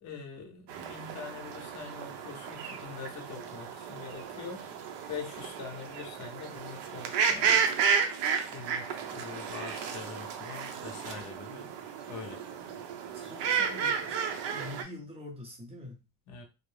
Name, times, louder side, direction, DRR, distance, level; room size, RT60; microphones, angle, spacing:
voice 1, 0.0-4.7 5.1-7.6 8.1-8.2 8.5-11.7 12.1-12.4 16.3-16.4, left 5 dB, 40° left, 2 dB, 0.6 m, -44 dB
sound 1, 0.7-14.8, right 6 dB, 65° right, 0.6 m, -32 dB
voice 2, 13.1-16.1, left 1 dB, 15° right, 1 dB, 0.5 m, -45 dB
2.5 x 2.0 x 3.1 m, 0.27 s
cardioid pair, 160°, 46 cm